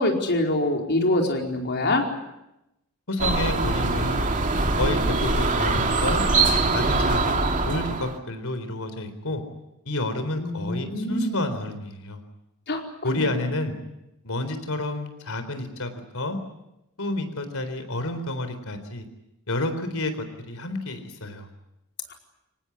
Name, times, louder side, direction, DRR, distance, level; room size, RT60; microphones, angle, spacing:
voice 1, 0.0-2.0 10.4-11.4 12.7-12.8 13.1-13.2, left 1 dB, 50° left, 2 dB, 4.8 m, -24 dB
voice 2, 3.1-4.3 4.8-6.2 6.7-9.4 9.9-12.2 13.0-13.8 14.2-16.4 17.0-19.1 19.5-20.1 20.5-21.5, left 2 dB, 70° left, 9 dB, 4.1 m, -29 dB
sound 1, 3.2-8.2, right 3 dB, 35° right, 2.5 m, -23 dB
25.0 x 19.0 x 9.9 m, 0.90 s
head